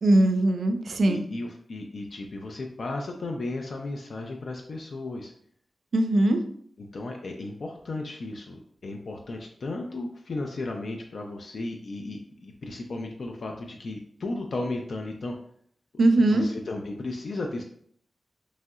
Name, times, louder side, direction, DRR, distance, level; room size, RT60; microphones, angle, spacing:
voice 1, 0.0-1.2 5.9-6.4 16.0-16.5, right 1 dB, 75° right, 7 dB, 0.3 m, -20 dB
voice 2, 1.1-5.3 6.8-15.3 16.3-17.6, left 2 dB, 70° left, 2 dB, 0.3 m, -35 dB
3.0 x 2.7 x 2.3 m, 0.63 s
wide cardioid pair, 85°, 0 cm